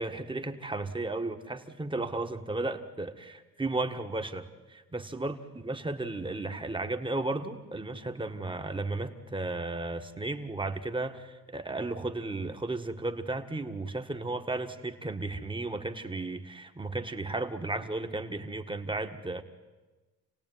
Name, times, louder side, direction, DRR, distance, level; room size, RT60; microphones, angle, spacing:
voice 1, 0.0-5.4 5.6-19.4, right 2 dB, 15° right, 6 dB, 1.8 m, -34 dB
28.0 x 17.5 x 9.5 m, 1.2 s
cardioid pair, 90°, 30 cm